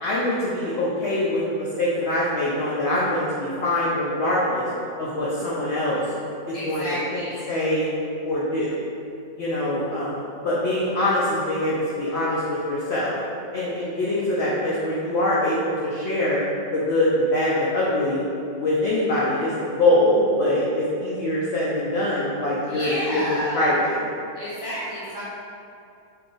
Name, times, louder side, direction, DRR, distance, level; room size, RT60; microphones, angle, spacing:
voice 1, 0.0-4.6 5.0-6.0 6.5-6.8 7.1-7.9 8.2-8.8 9.4-13.2 13.5-16.4 16.7-18.2 18.5-19.5 19.8-23.2 23.5-24.0, left 1 dB, 80° left, -7 dB, 0.6 m, -23 dB
voice 2, 6.5-7.4 22.7-23.6 24.3-25.2, equal, 25° right, -12 dB, 0.5 m, -30 dB
2.7 x 2.4 x 3.8 m, 2.6 s
omnidirectional pair, 1.7 m